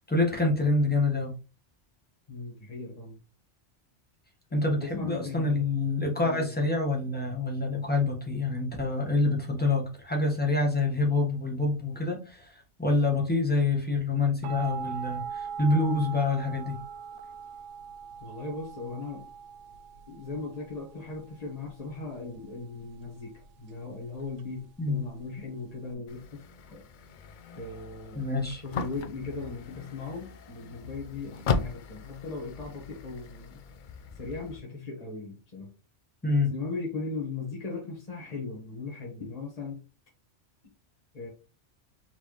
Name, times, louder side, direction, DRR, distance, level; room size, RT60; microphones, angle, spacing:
voice 1, 0.1-1.3 4.5-16.8 24.8-25.0 28.1-28.6 36.2-36.5, left 2 dB, 10° left, 0 dB, 1.2 m, -27 dB
voice 2, 2.3-3.2 4.5-5.6 6.1-6.5 18.2-19.2 20.1-26.8 27.6-28.3 28.6-33.6 34.1-35.7 36.5-39.8 41.1-41.3, left 3 dB, 35° left, -3 dB, 1.3 m, -38 dB
sound 1, 14.4-25.9, right 7 dB, 90° right, 0.9 m, -41 dB
sound 2, 26.1-34.6, left 5 dB, 60° left, 0.5 m, -37 dB
4.4 x 3.4 x 3.0 m, 0.32 s
omnidirectional pair, 1.2 m